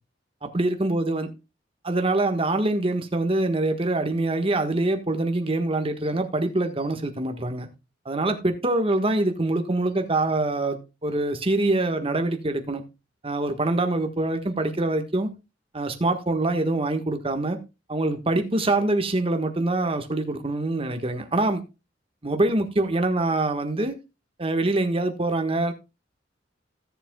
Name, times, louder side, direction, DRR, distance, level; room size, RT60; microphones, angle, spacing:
voice 1, 0.4-1.3 1.8-7.7 8.0-12.8 13.2-15.3 15.7-17.6 17.9-21.6 22.2-23.9 24.4-25.7, right 2 dB, 30° right, 1.4 m, -24 dB
16.0 x 7.6 x 2.3 m
head